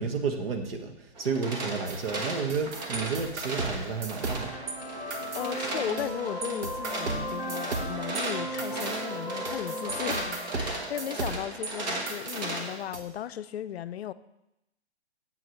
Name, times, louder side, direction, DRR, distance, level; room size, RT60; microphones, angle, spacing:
voice 1, 0.0-4.6, right 5 dB, 60° right, 1.3 m, -31 dB
sound 1, 1.2-12.8, right 2 dB, 40° right, 1.3 m, -37 dB
sound 2, 1.9-4.7 5.1-6.1 6.4-11.7 12.1-13.0, right 4 dB, 85° right, 1.4 m, -36 dB
sound 3, 4.2-11.2, equal, 25° right, 2.1 m, -37 dB
voice 2, 5.3-14.1, left 11 dB, 70° left, 0.5 m, -36 dB
7.7 x 4.7 x 6.4 m
hypercardioid pair, 165°, 33 cm